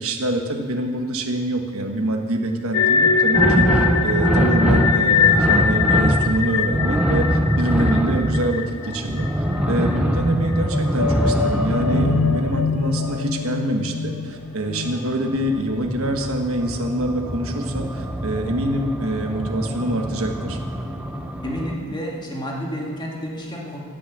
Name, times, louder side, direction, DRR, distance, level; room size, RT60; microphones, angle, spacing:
voice 1, 0.0-7.3 7.6-9.3 9.7-20.6, right 1 dB, 75° right, 4 dB, 1.3 m, -25 dB
sound 1, 2.7-9.6 9.9-10.0 10.5-15.9, left 5 dB, 80° left, 0.5 m, -23 dB
sound 2, 3.3-13.3 14.8-21.7, equal, 5° right, 0.7 m, -23 dB
voice 2, 21.4-23.8, equal, 20° left, -2 dB, 2.0 m, -30 dB
16.5 x 6.3 x 8.6 m, 2.3 s
head